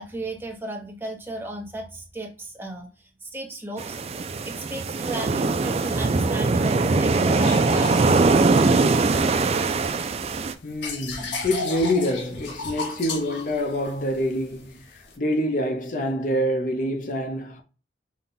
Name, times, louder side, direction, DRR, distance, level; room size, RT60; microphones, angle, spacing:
voice 1, 0.0-4.0 4.4-9.0, right 2 dB, 10° right, 0.9 m, -35 dB
sound 1, 3.8-10.5, right 3 dB, 35° right, 0.3 m, -21 dB
sound 2, 7.3-9.4 9.8-15.2, left 3 dB, 80° left, 1.0 m, -35 dB
voice 2, 10.6-17.6, equal, 45° left, 0.6 m, -26 dB
5.5 x 2.3 x 3.8 m
head